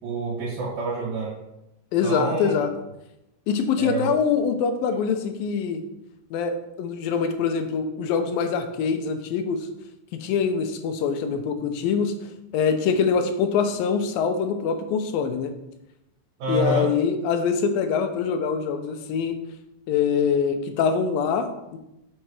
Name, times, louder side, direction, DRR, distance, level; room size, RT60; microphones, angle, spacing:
voice 1, 0.0-1.4 2.0-2.5 3.8-4.1 16.4-16.9, right 2 dB, 85° right, -5 dB, 4.0 m, -27 dB
voice 2, 1.9-2.7 3.5-5.8 6.3-9.7 10.2-15.5 16.5-19.4 19.9-21.8, left 6 dB, 90° left, 8 dB, 2.6 m, -24 dB
7.5 x 6.6 x 4.8 m, 0.89 s
omnidirectional pair, 4.0 m